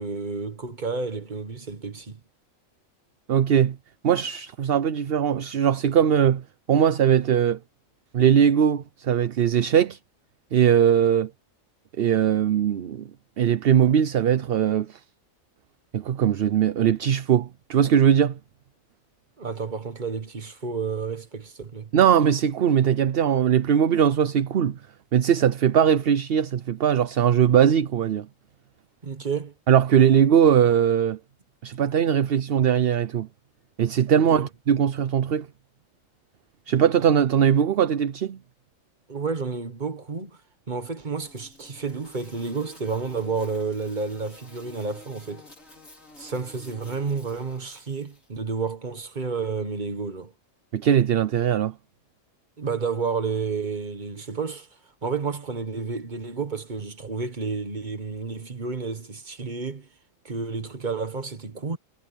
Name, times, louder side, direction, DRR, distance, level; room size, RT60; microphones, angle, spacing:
voice 1, 0.0-2.2 19.4-21.9 29.0-29.5 34.1-34.5 39.1-40.4 40.7-45.5 46.2-50.3 52.6-54.7 55.0-59.9 60.2-61.8, right 5 dB, 35° right, 1.6 m, -31 dB
voice 2, 3.3-3.8 4.0-7.6 8.1-10.0 10.5-11.3 12.0-13.1 13.4-15.0 15.9-18.4 21.9-24.8 25.1-28.3 29.7-31.2 31.6-33.3 33.8-35.5 36.7-38.4 50.7-51.7, right 9 dB, 55° right, 0.8 m, -20 dB
sound 1, 41.2-48.3, left 2 dB, 75° left, 5.6 m, -50 dB
omnidirectional pair, 1.4 m